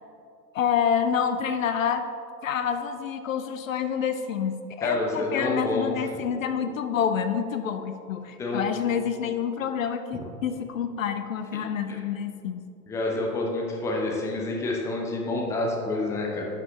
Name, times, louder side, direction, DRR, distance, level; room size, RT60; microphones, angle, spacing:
voice 1, 0.5-2.0 2.4-12.6, left 7 dB, 55° left, 8 dB, 0.6 m, -28 dB
voice 2, 4.8-5.9 8.4-8.6 11.9-12.0 12.9-16.4, left 2 dB, 5° left, -1 dB, 0.6 m, -28 dB
11.0 x 6.0 x 3.0 m, 2.6 s
figure-of-eight pair, 100°, 48 cm